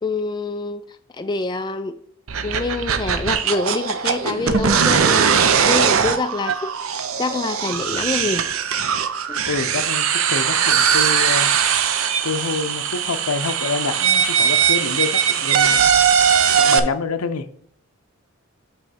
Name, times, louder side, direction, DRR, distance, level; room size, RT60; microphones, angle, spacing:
voice 1, 0.0-0.8 1.2-2.0 2.4-5.3 5.6-8.5 9.3-9.4, left 3 dB, 20° left, 0.3 m, -26 dB
sound 1, 2.3-16.8, right 7 dB, 70° right, 0.6 m, -20 dB
voice 2, 9.5-11.5 12.2-16.0 16.5-17.5, left 4 dB, 85° left, 0.6 m, -27 dB
7.8 x 3.1 x 5.6 m
head